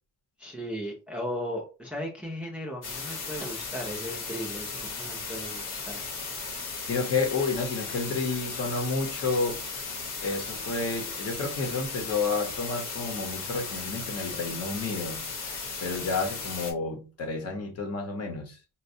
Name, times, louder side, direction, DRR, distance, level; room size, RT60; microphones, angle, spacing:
voice 1, 0.4-6.0, equal, 5° right, 0.4 m, -36 dB
sound 1, 2.8-16.7, left 4 dB, 65° left, 1.1 m, -36 dB
voice 2, 6.9-9.6 10.2-18.6, left 4 dB, 45° left, 0.9 m, -30 dB
4.2 x 2.1 x 2.6 m
wide cardioid pair, 175°, 33 cm